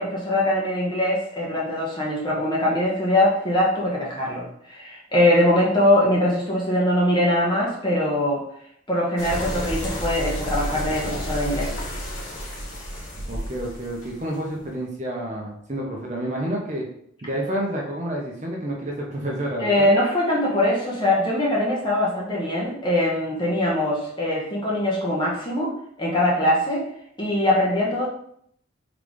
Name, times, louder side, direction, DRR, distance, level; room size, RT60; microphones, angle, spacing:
voice 1, 0.0-4.4 4.7-8.4 8.9-11.7 19.6-25.7 26.0-26.8 27.2-28.1, left 1 dB, 20° left, -4 dB, 1.1 m, -22 dB
sound 1, 9.2-14.6, equal, 70° left, 1.3 m, -31 dB
voice 2, 13.3-16.9 17.2-19.9, right 1 dB, 35° right, -1 dB, 0.8 m, -29 dB
3.9 x 3.4 x 3.5 m, 0.68 s
head